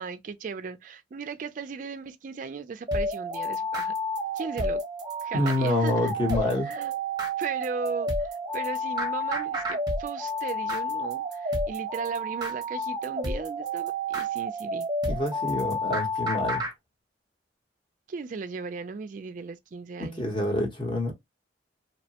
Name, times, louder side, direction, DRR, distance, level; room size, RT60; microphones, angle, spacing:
voice 1, 0.0-3.9 4.3-4.8 5.2-6.1 6.6-6.9 7.4-14.9 18.1-20.3, right 5 dB, 45° right, 0.3 m, -37 dB
Melody-loop, 2.9-16.7, equal, 20° right, 0.7 m, -30 dB
voice 2, 5.3-6.7 15.1-16.6 20.0-21.1, left 1 dB, 25° left, 0.9 m, -27 dB
2.8 x 2.1 x 2.7 m
head